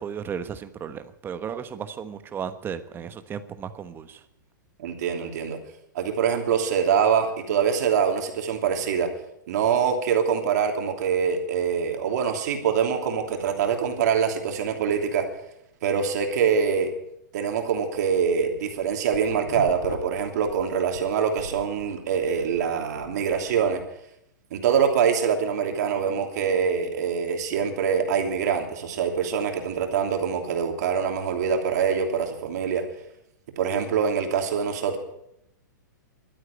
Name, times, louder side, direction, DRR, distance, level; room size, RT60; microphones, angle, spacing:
voice 1, 0.0-4.2, right 7 dB, 20° right, 11 dB, 1.2 m, -35 dB
voice 2, 4.8-5.6 5.9-9.1 9.5-15.2 15.8-16.9 17.3-23.8 24.5-32.8 33.6-35.0, right 7 dB, 60° right, 4 dB, 2.9 m, -24 dB
sound 1, 18.5-21.0 21.4-23.8, left 4 dB, 90° left, 2.6 m, -39 dB
12.5 x 9.8 x 9.9 m, 0.80 s
hypercardioid pair, 125°, 10 cm